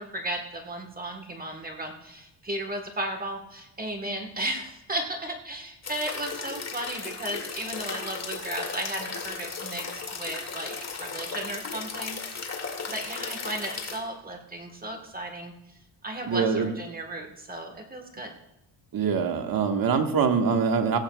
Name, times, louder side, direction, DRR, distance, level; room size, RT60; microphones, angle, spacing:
voice 1, 0.0-12.2 12.9-15.5 16.0-18.3, right 1 dB, 20° right, 4 dB, 1.3 m, -35 dB
sound 1, 5.8-14.0, left 4 dB, 35° left, 2.2 m, -36 dB
voice 2, 16.3-16.7 18.9-21.0, right 5 dB, 50° right, 5 dB, 1.4 m, -24 dB
16.0 x 15.5 x 2.3 m, 0.91 s
cardioid pair, 140°, 43 cm